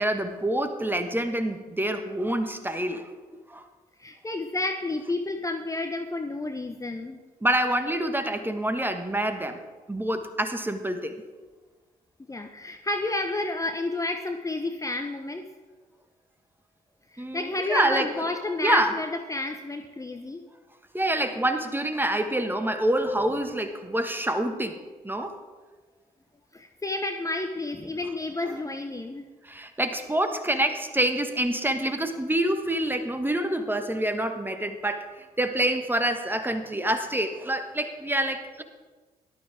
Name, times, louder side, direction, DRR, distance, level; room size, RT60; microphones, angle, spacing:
voice 1, 0.0-3.1 3.5-3.6 7.4-9.6 9.9-11.2 17.2-18.1 18.6-18.9 20.9-25.4 28.4-28.6 29.4-35.1 35.4-38.6, right 1 dB, 10° right, 8 dB, 1.4 m, -27 dB
voice 2, 4.0-7.2 12.3-15.5 17.1-20.4 26.5-29.3, left 2 dB, 15° left, 5 dB, 0.9 m, -31 dB
17.5 x 12.0 x 3.5 m, 1.3 s
figure-of-eight pair, 45°, 20 cm